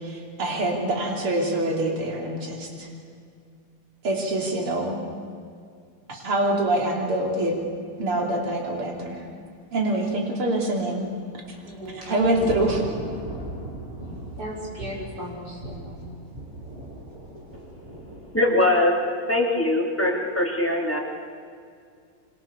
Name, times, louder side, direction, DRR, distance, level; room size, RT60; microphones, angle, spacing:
voice 1, 0.0-2.9 4.0-5.0 6.1-7.6 8.0-9.2 9.7-11.1 11.9-12.8, right 1 dB, 75° right, 0 dB, 4.3 m, -25 dB
Thunder / Rain, 10.9-18.3, right 1 dB, 25° right, 8.1 m, -38 dB
voice 2, 11.7-12.2 14.4-16.0, equal, 45° right, -3 dB, 6.6 m, -36 dB
voice 3, 18.3-18.9 19.3-21.0, left 1 dB, 5° left, -1 dB, 3.5 m, -21 dB
27.0 x 26.0 x 7.1 m, 2.3 s
omnidirectional pair, 2.4 m